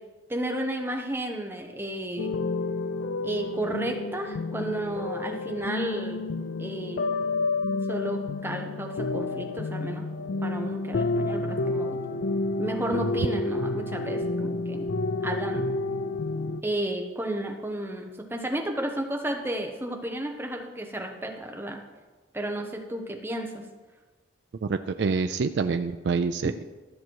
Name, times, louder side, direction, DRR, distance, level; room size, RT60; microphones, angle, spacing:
voice 1, 0.3-2.3 3.2-6.2 6.6-7.0 7.9-10.0 10.4-12.0 12.6-14.9 15.2-15.7 16.6-21.8 22.3-23.5 26.4-26.5, right 1 dB, 10° right, 2 dB, 0.9 m, -32 dB
sound 1, 2.2-16.6, left 2 dB, 80° left, 0.5 m, -30 dB
voice 2, 24.6-26.6, right 4 dB, 65° right, 9 dB, 0.3 m, -26 dB
13.0 x 6.2 x 4.6 m, 1.3 s
head